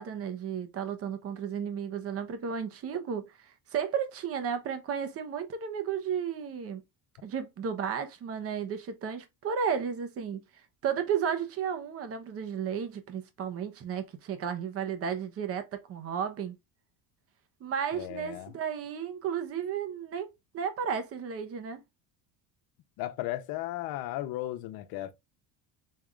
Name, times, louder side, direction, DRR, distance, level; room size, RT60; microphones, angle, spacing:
voice 1, 0.0-6.8 7.2-10.4 10.8-16.5 17.6-20.3 20.5-21.8, right 7 dB, 40° right, 1.0 m, -33 dB
voice 2, 17.9-18.5 23.0-25.1, left 15 dB, 70° left, 0.9 m, -35 dB
5.6 x 3.6 x 2.4 m
cardioid pair, 145°, 37 cm